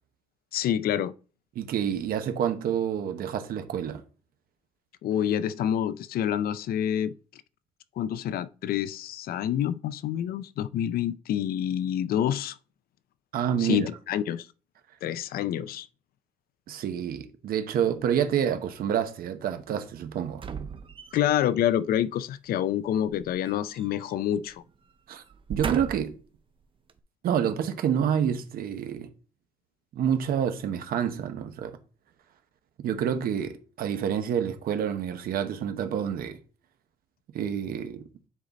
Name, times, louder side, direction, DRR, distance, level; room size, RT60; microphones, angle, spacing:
voice 1, 0.5-1.1 5.0-7.1 8.0-12.6 13.6-14.5 15.0-15.9 21.1-24.6, left 10 dB, 80° left, 0.5 m, -27 dB
voice 2, 1.5-4.0 13.3-13.9 16.7-20.4 25.1-25.2 25.5-26.1 27.2-29.1 29.9-31.8 32.8-36.4 37.3-38.1, right 8 dB, 75° right, 1.0 m, -28 dB
sound 1, 20.3-21.5 23.0-24.2 24.5-24.7 25.3-26.2 26.9-27.0, right 6 dB, 35° right, 0.6 m, -36 dB
9.6 x 3.9 x 4.1 m
cardioid pair, 150°, 15 cm